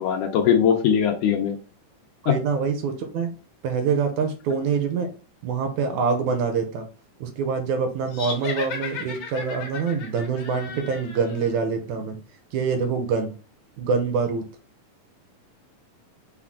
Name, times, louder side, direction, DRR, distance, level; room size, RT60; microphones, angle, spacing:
voice 1, 0.0-1.6 2.3-2.4, left 8 dB, 75° left, 3 dB, 2.0 m, -20 dB
voice 2, 2.2-3.3 3.6-5.1 5.4-6.9 7.2-12.2 12.5-13.3 13.8-14.5, right 5 dB, 75° right, 6 dB, 1.9 m, -25 dB
sound 1, 8.1-11.5, left 5 dB, 60° left, 1.7 m, -35 dB
5.8 x 2.3 x 3.5 m, 0.36 s
omnidirectional pair, 3.7 m